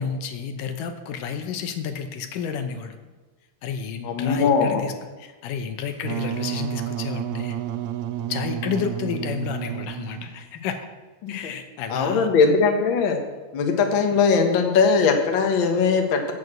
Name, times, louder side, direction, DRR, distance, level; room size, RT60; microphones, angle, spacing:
voice 1, 0.0-3.0 3.6-7.6 8.3-10.9 11.3-12.3, left 7 dB, 80° left, 7 dB, 2.4 m, -31 dB
voice 2, 4.0-4.8 11.2-11.3 11.9-13.2 13.5-16.3, left 5 dB, 55° left, 4 dB, 1.5 m, -20 dB
Wind instrument woodwind instrument, 6.0-10.5, right 12 dB, 80° right, 1.8 m, -31 dB
8.9 x 8.3 x 7.7 m, 1.3 s
omnidirectional pair, 3.8 m